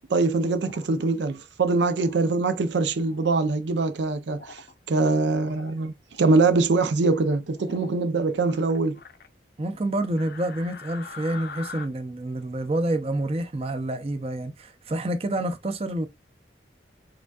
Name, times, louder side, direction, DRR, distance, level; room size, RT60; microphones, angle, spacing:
voice 1, 0.1-9.0, right 3 dB, 75° right, 0.5 m, -23 dB
sound 1, 0.6-1.1 1.8-2.2 2.9-3.4 4.3-4.7 5.2-5.8 6.1-6.5 7.5-8.0 8.3-9.3 10.2-11.9, left 5 dB, 60° left, 0.7 m, -44 dB
voice 2, 9.6-16.1, right 1 dB, 35° right, 0.6 m, -28 dB
4.9 x 3.5 x 2.3 m
head